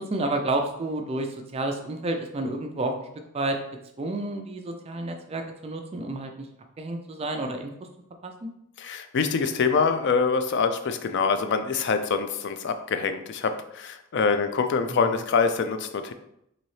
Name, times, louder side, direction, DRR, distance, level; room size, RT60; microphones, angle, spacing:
voice 1, 0.0-3.1 3.3-3.6 4.0-6.5 6.8-7.7 8.2-8.5 14.9-15.0, right 2 dB, 30° right, 4 dB, 0.4 m, -30 dB
voice 2, 8.8-16.1, left 5 dB, 55° left, 9 dB, 0.4 m, -25 dB
4.0 x 2.7 x 3.1 m, 0.77 s
head